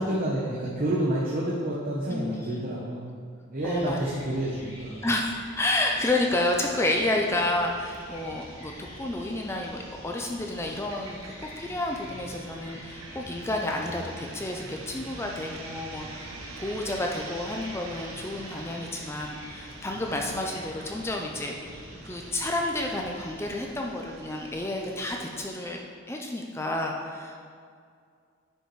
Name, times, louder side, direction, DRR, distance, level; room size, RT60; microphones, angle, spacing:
voice 1, 0.0-3.1 3.5-5.0, right 1 dB, 40° right, -5 dB, 0.9 m, -29 dB
voice 2, 2.1-2.6 3.6-4.0 5.0-8.7 9.0-21.8 22.0-27.5, left 1 dB, 10° left, 1 dB, 0.4 m, -30 dB
sound 1, 3.6-23.6, equal, 30° left, 1.5 m, -48 dB
sound 2, 5.8-25.4, right 2 dB, 75° right, 1.0 m, -45 dB
10.0 x 5.6 x 3.2 m, 2.2 s
head